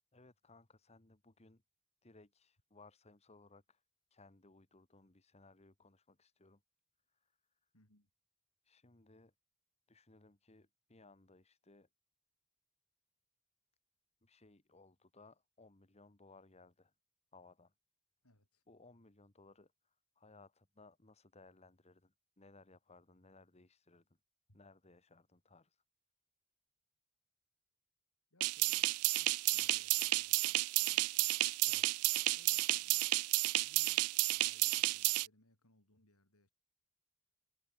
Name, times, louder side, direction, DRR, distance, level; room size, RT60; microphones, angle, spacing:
voice 1, 0.1-1.6 2.0-3.8 4.1-6.6 7.1-7.7 8.6-9.3 9.9-11.9 14.2-16.9 17.3-17.7 18.7-24.0 24.5-25.8 31.6-32.1, left 3 dB, 30° left, 1.6 m, -63 dB
voice 2, 7.7-8.1 18.2-18.6 24.5-24.6 28.3-28.9 29.2-31.4 32.3-33.1 33.6-36.5, left 1 dB, 85° left, 7.3 m, -69 dB
sound 1, 28.4-35.3, right 19 dB, 85° right, 0.4 m, -32 dB
head